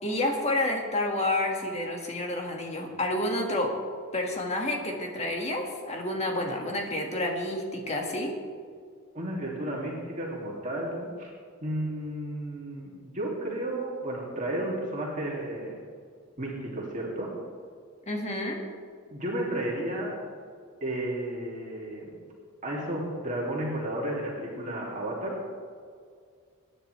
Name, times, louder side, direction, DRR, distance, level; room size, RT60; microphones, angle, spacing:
voice 1, 0.0-3.8 4.1-8.3 18.1-18.6, left 1 dB, 30° left, 1 dB, 2.0 m, -29 dB
voice 2, 9.1-11.3 11.6-15.8 16.4-17.3 19.1-20.2 20.8-22.1 22.6-25.4, right 1 dB, 40° right, -4 dB, 2.7 m, -33 dB
23.0 x 10.0 x 3.4 m, 2.1 s
head